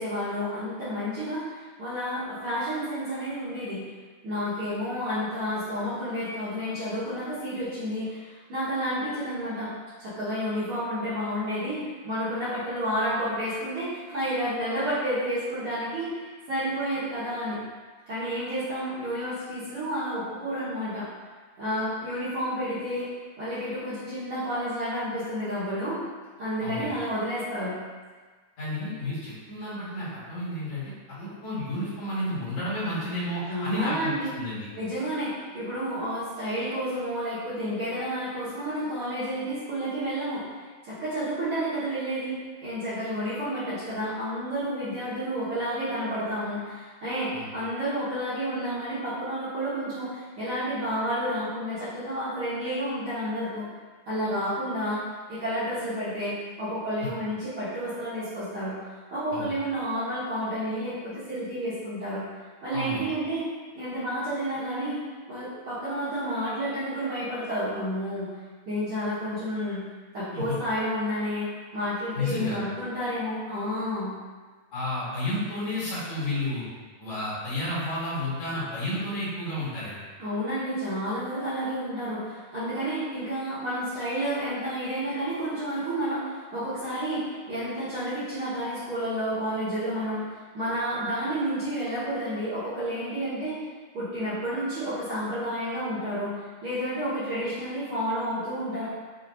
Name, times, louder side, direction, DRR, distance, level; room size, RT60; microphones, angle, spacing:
voice 1, 0.0-3.9 4.2-9.7 10.0-11.8 12.0-17.6 18.1-21.1 21.6-23.1 23.4-26.0 26.4-27.8 33.5-34.3 34.7-40.5 40.8-42.3 42.6-53.7 54.1-55.0 55.3-58.8 59.1-62.3 62.6-63.5 63.7-65.0 65.3-68.4 68.7-69.8 70.1-71.5 71.7-74.2 80.2-93.5 93.9-98.9, equal, 60° right, -13 dB, 1.6 m, -30 dB
voice 2, 26.6-26.9 28.6-34.7 47.3-47.4 59.3-59.5 62.7-63.0 70.3-70.6 72.1-72.6 74.7-76.6 77.0-80.0, left 1 dB, 60° left, -10 dB, 2.5 m, -31 dB
7.3 x 2.9 x 2.5 m, 1.4 s
omnidirectional pair, 3.8 m